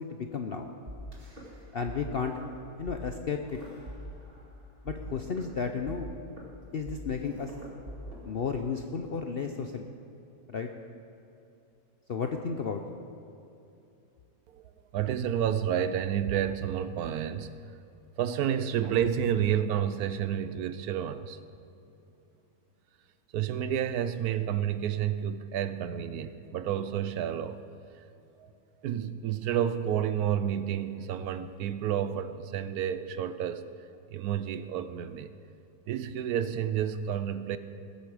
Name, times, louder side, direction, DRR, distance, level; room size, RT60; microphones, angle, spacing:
voice 1, 0.1-0.7 1.7-2.4 2.8-3.6 4.8-6.1 6.7-7.5 8.2-9.9 10.5-10.7 12.1-12.8, left 5 dB, 60° left, 5 dB, 0.6 m, -33 dB
sound 1, 0.9-2.0 2.2-2.5 2.9-3.0 3.5-4.5 4.9-8.9, equal, 35° right, 2.3 m, -44 dB
voice 2, 14.5-17.6 18.2-21.4 23.3-27.6 28.4-28.5 28.8-33.7 34.1-35.3 35.9-37.6, right 9 dB, 75° right, 12 dB, 1.0 m, -30 dB
20.0 x 8.4 x 4.9 m, 2.7 s
omnidirectional pair, 1.7 m